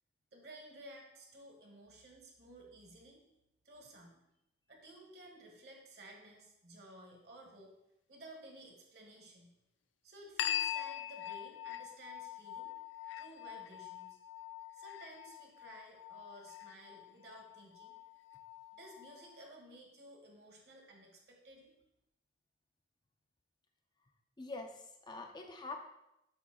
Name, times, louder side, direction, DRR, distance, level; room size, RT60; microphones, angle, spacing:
voice 1, 0.3-3.2 3.6-4.2 4.7-7.7 8.1-9.5 10.0-12.7 13.2-14.2 14.7-18.0 18.7-21.7, right 1 dB, 60° right, 1 dB, 1.4 m, -55 dB
sound 1, 10.4-19.4, left 11 dB, 85° left, 0.4 m, -43 dB
voice 2, 24.4-25.9, left 3 dB, 25° left, 3 dB, 0.5 m, -45 dB
7.9 x 2.8 x 6.0 m, 0.85 s
head